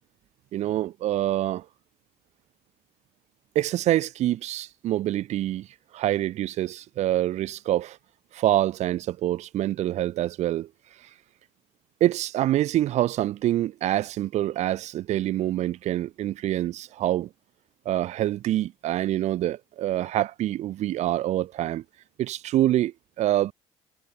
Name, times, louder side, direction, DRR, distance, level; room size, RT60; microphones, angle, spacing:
voice 1, 0.5-1.6 3.5-5.7 5.9-8.0 8.3-10.7 12.0-17.3 17.8-21.8 22.2-23.5, right 13 dB, 65° right, 2.9 m, -26 dB
supercardioid pair, 90°, 13 cm